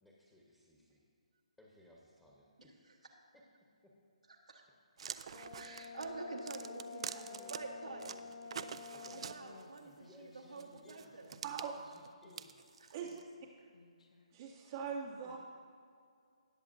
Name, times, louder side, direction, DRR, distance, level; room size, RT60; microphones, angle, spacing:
voice 1, 0.0-1.0 1.6-2.7 3.3-3.4 3.8-3.9 7.4-9.2 9.8-11.2 11.8-12.6 15.2-15.4, equal, 10° left, -4 dB, 1.1 m, -62 dB
sound 1, 5.0-7.6 8.0-9.8 10.6-13.2, right 7 dB, 55° right, 0.4 m, -46 dB
Brass instrument, 5.3-9.4, left 5 dB, 35° left, 0.6 m, -49 dB
voice 2, 5.5-8.1 9.1-11.3, right 3 dB, 90° right, -1 dB, 1.4 m, -47 dB
Human voice, 9.1-14.3, left 3 dB, 70° left, 1.2 m, -62 dB
voice 3, 11.4-11.8 12.9-13.2 14.3-15.4, right 6 dB, 35° right, -2 dB, 0.8 m, -41 dB
19.0 x 6.8 x 2.7 m, 2.2 s
hypercardioid pair, 150°, 4 cm